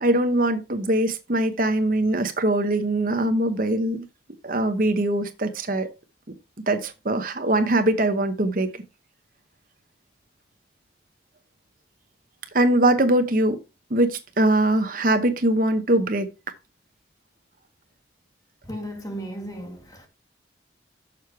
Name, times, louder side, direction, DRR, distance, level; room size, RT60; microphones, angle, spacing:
voice 1, 0.0-4.0 4.4-5.9 6.7-8.7 12.5-13.6 13.9-16.3, right 1 dB, 45° right, 1.0 m, -22 dB
voice 2, 18.6-20.1, equal, 20° left, 1.6 m, -35 dB
6.8 x 6.4 x 4.5 m
head